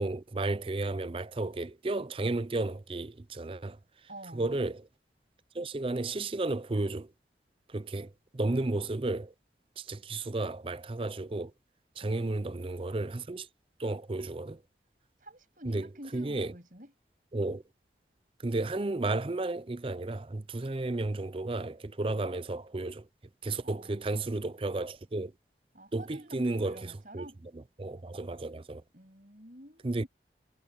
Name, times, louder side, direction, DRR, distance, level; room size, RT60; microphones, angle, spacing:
voice 1, 0.0-3.8 4.3-4.9 5.5-7.1 7.7-9.3 9.8-11.5 12.0-13.5 13.8-14.6 15.7-15.9 16.1-16.5 17.3-17.6 18.4-23.1 23.4-25.3 25.9-27.3 27.5-28.8 29.8-30.0, right 2 dB, 30° right, 0.5 m, -33 dB
voice 2, 4.1-4.5 12.0-12.6 15.2-16.9 23.6-24.1 25.7-27.4 28.9-30.1, right 1 dB, 50° right, 7.9 m, -49 dB
head